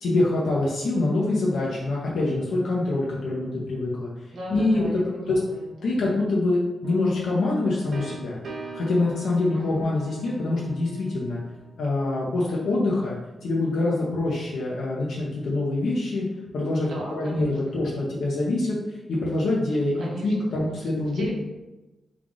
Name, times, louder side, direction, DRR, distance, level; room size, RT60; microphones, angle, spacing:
voice 1, 0.0-4.1 4.5-4.9 5.3-5.4 5.8-8.4 8.7-11.4 11.8-13.2 13.4-16.3 16.5-21.3, left 2 dB, 85° left, -5 dB, 0.7 m, -25 dB
voice 2, 4.3-6.1 9.5-9.8 16.9-17.8 20.0-21.3, right 1 dB, 85° right, -3 dB, 0.9 m, -37 dB
sound 1, 6.8-12.5, right 3 dB, 55° right, 0.5 m, -42 dB
3.3 x 2.3 x 3.8 m, 1.1 s
wide cardioid pair, 125°, 0 cm